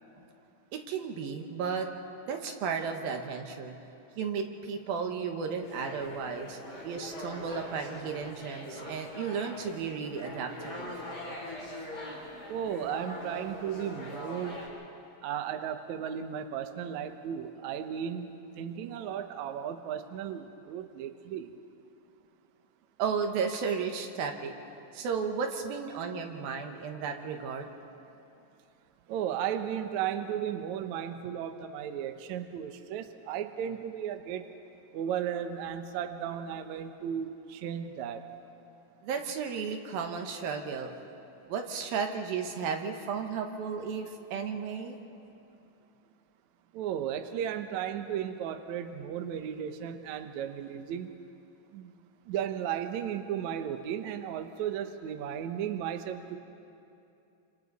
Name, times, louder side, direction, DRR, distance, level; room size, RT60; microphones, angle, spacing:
voice 1, 0.7-1.9 2.3-3.7 4.2-11.0 23.0-24.5 24.9-27.7 39.0-40.9 41.5-45.0, right 6 dB, 90° right, 4 dB, 3.2 m, -34 dB
sound 1, 5.6-14.7, left 1 dB, 25° left, 6.0 m, -42 dB
voice 2, 12.5-14.6 15.2-21.5 29.1-34.4 34.9-38.3 46.7-51.1 51.7-51.9 52.3-56.4, right 9 dB, 70° right, 7 dB, 1.9 m, -35 dB
28.5 x 27.0 x 4.1 m, 2.7 s
omnidirectional pair, 4.1 m